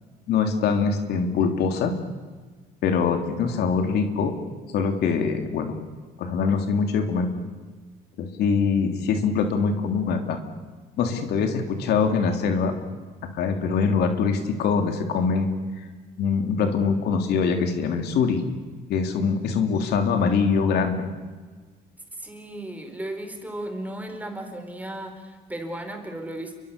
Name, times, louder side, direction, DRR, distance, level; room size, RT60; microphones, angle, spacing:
voice 1, 0.3-1.9 2.8-4.3 4.7-5.7 6.2-7.3 8.2-10.4 11.0-12.7 13.3-15.5 16.2-18.4 18.9-21.1, left 5 dB, 75° left, 5 dB, 3.3 m, -23 dB
voice 2, 22.2-26.5, right 1 dB, 10° right, 5 dB, 4.6 m, -35 dB
29.5 x 23.0 x 6.9 m, 1.4 s
cardioid pair, 110°, 17 cm